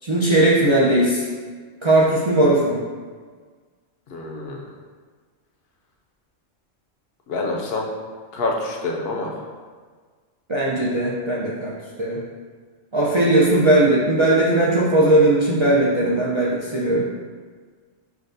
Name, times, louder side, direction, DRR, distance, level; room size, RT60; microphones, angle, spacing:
voice 1, 0.0-1.2 1.8-2.8 10.5-12.2 12.9-17.1, right 1 dB, 45° right, -7 dB, 0.4 m, -18 dB
voice 2, 4.1-4.6 7.3-7.9 8.3-9.3, left 2 dB, 65° left, 0 dB, 0.8 m, -26 dB
5.9 x 2.3 x 2.6 m, 1.5 s
omnidirectional pair, 1.1 m